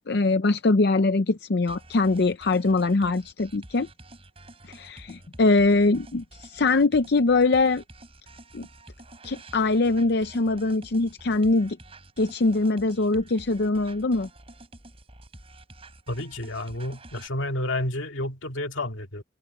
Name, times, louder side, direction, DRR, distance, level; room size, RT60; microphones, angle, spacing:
voice 1, 0.1-3.9 4.7-7.8 8.5-8.7 9.2-11.8 12.2-14.3, left 3 dB, 55° left, 0.6 m, -22 dB
sound 1, 1.7-17.3, right 2 dB, 30° right, 6.4 m, -48 dB
voice 2, 16.1-19.2, left 1 dB, 75° left, 2.2 m, -30 dB
open air
head